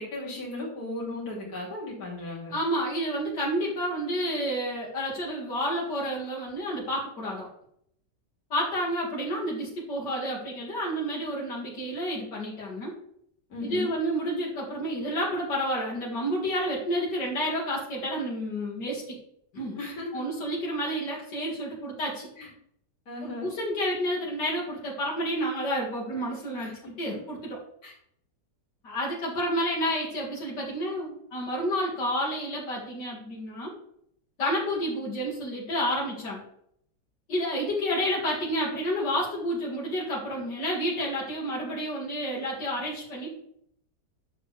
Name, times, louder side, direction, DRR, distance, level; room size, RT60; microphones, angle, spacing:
voice 1, 0.0-2.5 13.5-13.9 19.8-20.2 22.4-22.5 23.1-23.5 26.5-26.7 27.1-27.2 27.8-27.9, left 2 dB, 60° left, -4 dB, 3.2 m, -36 dB
voice 2, 2.5-7.5 8.5-12.9 13.6-19.2 19.5-19.8 20.1-22.3 23.2-26.7 27.0-27.6 28.8-33.7 34.4-36.4 37.3-43.3, equal, 85° left, -4 dB, 2.9 m, -30 dB
10.5 x 7.0 x 3.3 m, 0.69 s
omnidirectional pair, 1.8 m